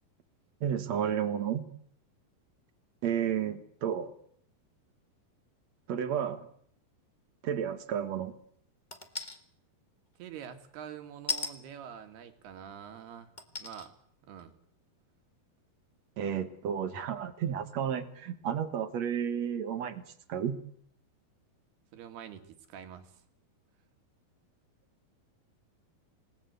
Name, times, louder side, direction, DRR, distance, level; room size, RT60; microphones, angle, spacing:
voice 1, 0.6-1.7 3.0-4.1 5.9-6.5 7.4-8.4 16.2-20.0 20.3-20.6, right 8 dB, 55° right, 10 dB, 2.2 m, -32 dB
sound 1, 8.9-9.4 11.3-11.5 12.5-12.6 13.4-13.9 14.4-14.5, left 3 dB, 80° left, 0.4 m, -35 dB
voice 2, 10.2-13.9 14.2-14.5 21.9-23.2, right 8 dB, 90° right, 7 dB, 4.0 m, -46 dB
27.0 x 19.0 x 8.2 m, 0.64 s
omnidirectional pair, 4.4 m